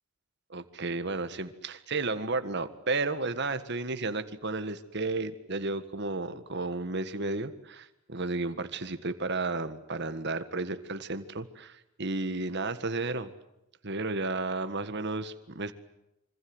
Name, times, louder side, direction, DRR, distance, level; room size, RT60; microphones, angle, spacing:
voice 1, 0.5-13.3 13.8-15.7, right 3 dB, 55° right, 10 dB, 1.7 m, -33 dB
26.5 x 25.5 x 8.0 m, 0.87 s
head